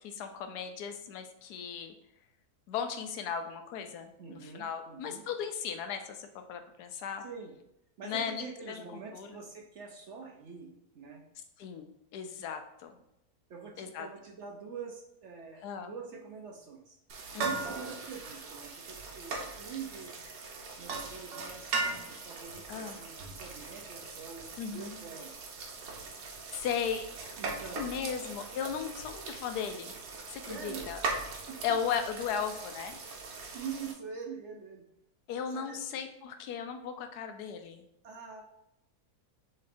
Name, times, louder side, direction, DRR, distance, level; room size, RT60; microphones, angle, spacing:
voice 1, 0.0-1.9 2.7-7.2 8.0-8.8 9.1-9.4 11.6-12.9 13.8-14.1 15.6-15.9 17.3-17.6 22.7-23.0 24.6-25.0 26.5-27.4 27.7-29.9 30.3-31.0 31.6-33.0 35.3-37.8, left 7 dB, 85° left, 7 dB, 1.2 m, -36 dB
voice 2, 4.2-5.2 7.2-7.5 8.0-10.7 10.9-11.2 13.5-17.0 17.4-20.3 20.8-25.3 27.4-27.8 30.4-30.9 31.5-31.6 33.5-34.8 35.5-35.8 38.0-38.4, right 6 dB, 60° right, 1 dB, 0.8 m, -45 dB
sound 1, 17.1-33.9, right 4 dB, 90° right, 1.4 m, -40 dB
6.5 x 3.1 x 2.6 m, 0.83 s
omnidirectional pair, 1.7 m